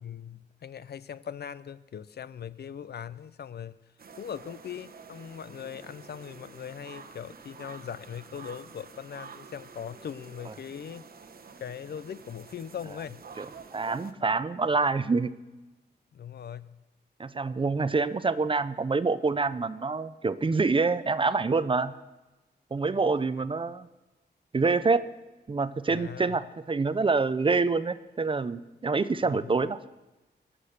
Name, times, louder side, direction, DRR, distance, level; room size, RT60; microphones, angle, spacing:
voice 1, 0.0-3.8 4.1-11.1 11.6-13.2 16.1-16.8 23.4-23.5 25.9-26.4 29.2-29.5, left 8 dB, 70° left, 16 dB, 0.5 m, -40 dB
sound 1, 4.0-14.1, right 5 dB, 60° right, 0.9 m, -49 dB
voice 2, 13.7-15.3 17.2-21.9 22.7-23.9 24.5-25.1 25.5-29.8, right 4 dB, 30° right, 14 dB, 0.5 m, -26 dB
19.0 x 7.5 x 6.7 m, 1.1 s
wide cardioid pair, 140°, 18 cm